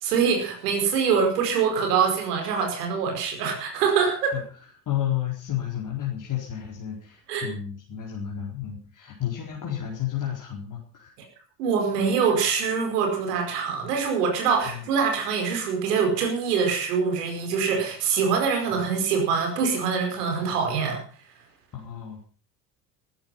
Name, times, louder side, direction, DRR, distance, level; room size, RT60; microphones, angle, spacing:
voice 1, 0.0-4.4 7.3-7.5 11.6-21.0, right 6 dB, 65° right, 3 dB, 5.2 m, -24 dB
voice 2, 4.9-11.1 14.6-14.8 18.7-18.9 21.7-22.2, left 11 dB, 40° left, -2 dB, 4.4 m, -31 dB
14.5 x 14.5 x 5.6 m, 0.42 s
figure-of-eight pair, 65°, 49 cm